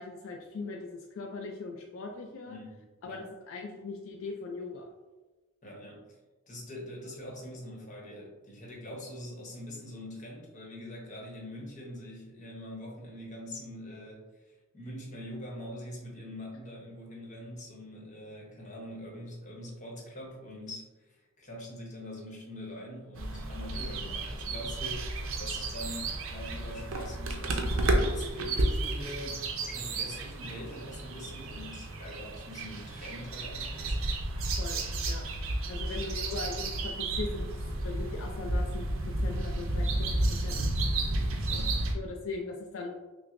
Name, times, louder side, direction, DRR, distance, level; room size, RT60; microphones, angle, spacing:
voice 1, 0.0-2.6 3.0-4.9 34.6-34.8 35.1-35.3 35.7-40.1 40.4-40.6 41.9-42.9, left 3 dB, 75° left, 1 dB, 0.4 m, -40 dB
voice 2, 2.4-2.8 3.0-3.3 5.6-6.2 6.5-14.4 14.7-34.1 41.5-41.8, left 1 dB, 35° left, -2 dB, 0.9 m, -43 dB
sound 1, 23.1-41.9, right 2 dB, 75° right, 0.5 m, -32 dB
5.8 x 2.0 x 2.5 m, 1.2 s
head